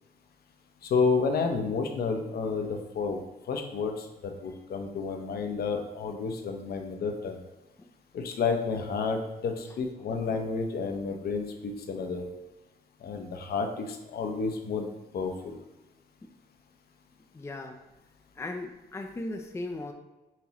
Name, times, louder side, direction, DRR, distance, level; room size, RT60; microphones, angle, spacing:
voice 1, 0.8-7.4 8.1-12.3 13.0-14.9 15.1-15.6, left 4 dB, 65° left, 4 dB, 0.7 m, -30 dB
voice 2, 17.3-17.8 18.3-19.9, left 2 dB, 15° left, 3 dB, 0.4 m, -37 dB
5.7 x 2.9 x 3.0 m, 1.1 s
cardioid pair, 70°, 17 cm